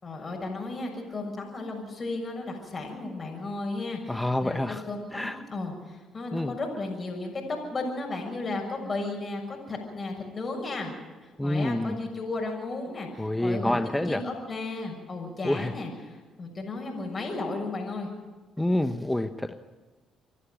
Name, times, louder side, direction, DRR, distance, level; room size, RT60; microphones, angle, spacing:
voice 1, 0.0-10.9 11.2-18.1, left 2 dB, 35° left, 1 dB, 6.8 m, -34 dB
voice 2, 4.1-4.8 5.1-5.4 6.3-6.5 11.4-12.0 13.2-14.2 15.4-15.7 18.6-19.5, left 1 dB, 10° left, 9 dB, 1.1 m, -27 dB
27.0 x 11.5 x 9.2 m, 1.3 s
supercardioid pair, 65°, 0 cm